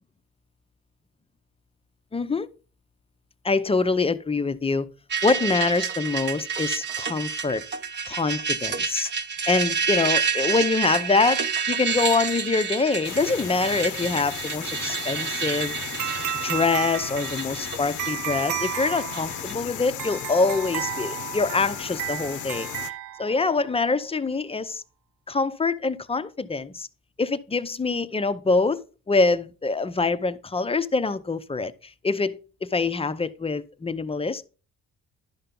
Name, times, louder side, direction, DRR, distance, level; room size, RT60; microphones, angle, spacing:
voice 1, 2.1-2.5 3.4-4.9 5.2-7.6 8.1-9.1 9.5-11.4 11.7-15.8 16.4-22.7 23.2-24.8 25.3-26.9 27.2-31.7 32.0-34.5, left 3 dB, 20° left, 0.5 m, -25 dB
sound 1, 5.1-19.5, right 6 dB, 35° right, 0.7 m, -29 dB
sound 2, 13.0-22.9, left 12 dB, 80° left, 0.6 m, -36 dB
sound 3, 16.0-23.7, right 13 dB, 75° right, 0.5 m, -33 dB
11.0 x 5.6 x 3.7 m
cardioid pair, 90°, 30 cm